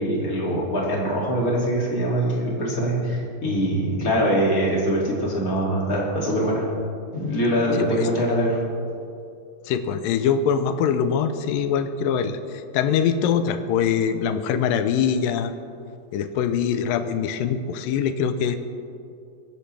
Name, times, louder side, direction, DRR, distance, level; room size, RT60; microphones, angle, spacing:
voice 1, 0.0-6.6 7.1-8.6, equal, 25° left, -4 dB, 2.5 m, -23 dB
voice 2, 7.8-8.1 9.6-15.5 16.1-18.6, left 7 dB, 85° left, 10 dB, 2.4 m, -23 dB
22.0 x 10.5 x 3.4 m, 2.4 s
omnidirectional pair, 4.0 m